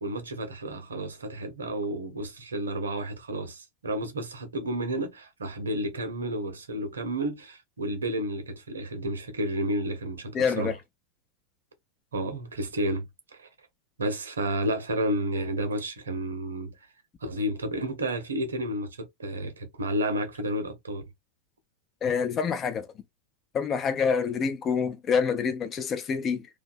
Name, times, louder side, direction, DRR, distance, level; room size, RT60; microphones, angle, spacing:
voice 1, 0.0-10.7 12.1-13.1 13.3-13.5 14.0-16.7 17.2-21.0, right 1 dB, 70° right, 0.7 m, -31 dB
voice 2, 10.3-10.7 22.0-22.9 23.5-26.5, left 6 dB, 25° left, 0.4 m, -27 dB
2.5 x 2.2 x 2.5 m
figure-of-eight pair, 90°, 0 cm